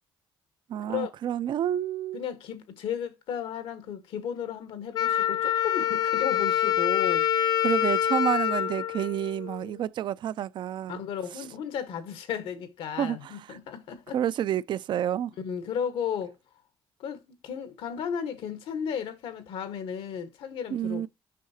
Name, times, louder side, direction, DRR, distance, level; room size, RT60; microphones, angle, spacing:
voice 1, 0.7-2.2 7.6-11.0 13.0-13.6 14.1-15.3 20.7-21.1, right 10 dB, 55° right, 0.4 m, -29 dB
voice 2, 2.1-7.2 10.9-14.2 15.4-16.4 17.0-21.1, left 8 dB, 75° left, 1.2 m, -34 dB
Wind instrument woodwind instrument, 4.9-9.7, left 10 dB, 50° left, 0.4 m, -26 dB
7.5 x 5.6 x 2.7 m
cardioid pair, 100°, 9 cm